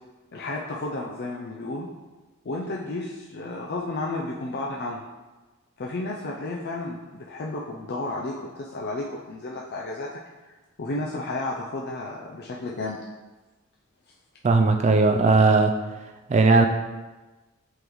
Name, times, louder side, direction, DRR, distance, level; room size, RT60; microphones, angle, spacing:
voice 1, 0.3-1.9 2.4-5.0 5.8-10.1 10.5-13.0, left 2 dB, 50° left, -2 dB, 0.5 m, -32 dB
voice 2, 14.4-15.7 16.3-16.7, right 3 dB, 30° right, 5 dB, 0.3 m, -18 dB
8.1 x 3.9 x 3.1 m, 1.2 s
head